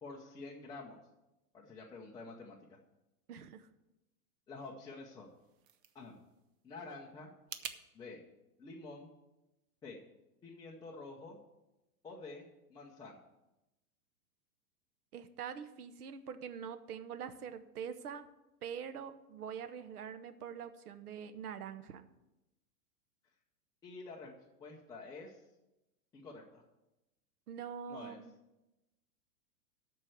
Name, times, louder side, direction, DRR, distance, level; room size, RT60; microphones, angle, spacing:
voice 1, 0.0-1.0 1.5-2.6 4.5-5.3 5.9-6.2 6.6-7.3 7.9-8.2 8.6-9.1 9.8-10.0 10.4-11.4 12.0-13.2 23.8-24.3 24.6-25.4 26.1-26.6 27.9-28.2, left 3 dB, 10° left, -4 dB, 0.7 m, -48 dB
voice 2, 3.3-3.7 15.1-18.3 18.6-22.0 27.5-28.3, right 7 dB, 75° right, 11 dB, 1.1 m, -44 dB
sound 1, 5.2-7.8, right 9 dB, 35° right, 0.7 m, -49 dB
13.0 x 4.6 x 7.8 m, 0.97 s
hypercardioid pair, 145°, 46 cm